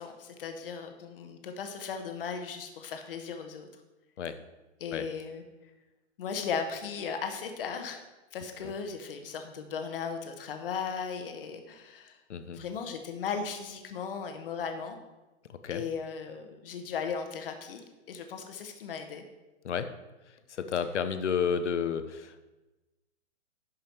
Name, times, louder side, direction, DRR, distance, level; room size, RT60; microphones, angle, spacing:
voice 1, 0.0-3.7 4.8-5.4 6.2-8.0 8.3-12.2 12.5-15.0 15.7-17.8 18.1-19.2, left 6 dB, 50° left, 6 dB, 1.4 m, -37 dB
voice 2, 20.5-22.4, left 7 dB, 80° left, 10 dB, 1.0 m, -31 dB
11.0 x 5.7 x 4.5 m, 1.1 s
hypercardioid pair, 155°, 35 cm